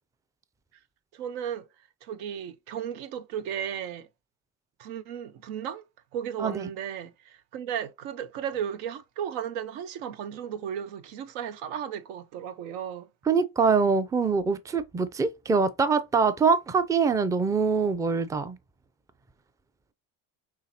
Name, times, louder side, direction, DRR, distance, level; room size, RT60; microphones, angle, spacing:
voice 1, 1.1-1.7 2.0-4.1 4.8-5.8 6.1-13.1, right 9 dB, 80° right, 0.7 m, -35 dB
voice 2, 6.4-6.7 13.3-18.6, right 5 dB, 10° right, 0.4 m, -24 dB
5.6 x 3.0 x 2.8 m
supercardioid pair, 90°, 36 cm